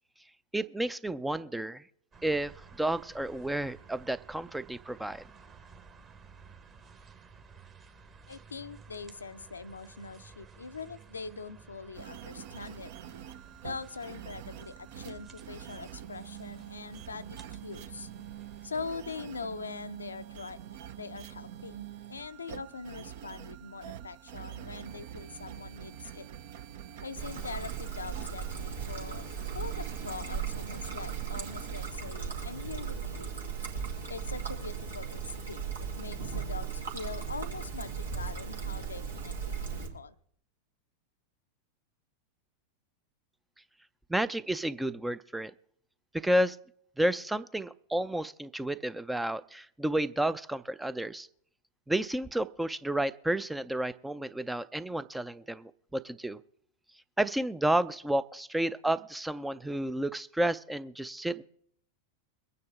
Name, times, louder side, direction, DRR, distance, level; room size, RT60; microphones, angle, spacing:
voice 1, 0.5-1.8 2.2-5.2 44.1-45.5 46.1-46.6 47.0-51.3 51.9-56.4 57.2-61.4, right 1 dB, 5° right, 16 dB, 0.4 m, -31 dB
sound 1, 2.1-18.7, right 5 dB, 25° right, 1.3 m, -54 dB
voice 2, 8.3-12.9 13.6-18.1 18.6-20.6 20.9-26.3 27.0-29.3 29.5-33.3 34.1-40.2, left 4 dB, 75° left, 11 dB, 0.5 m, -42 dB
sound 2, 11.9-31.9, right 10 dB, 50° right, 0.7 m, -45 dB
Trickle dribble, 27.2-39.9, right 6 dB, 75° right, 2.2 m, -37 dB
22.5 x 9.4 x 3.6 m, 0.66 s
figure-of-eight pair, 90°, 0 cm